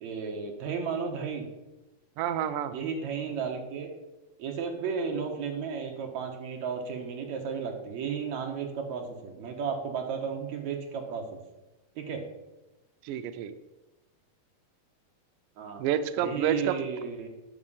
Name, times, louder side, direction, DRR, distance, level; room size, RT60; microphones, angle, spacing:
voice 1, 0.0-1.5 2.7-3.9 4.4-11.4 12.0-12.2 15.6-15.8 16.2-17.3, right 6 dB, 65° right, 2 dB, 2.2 m, -33 dB
voice 2, 2.2-2.7 13.0-13.5 15.8-16.8, right 9 dB, 80° right, 10 dB, 1.9 m, -28 dB
9.9 x 6.2 x 5.5 m, 1.0 s
omnidirectional pair, 4.1 m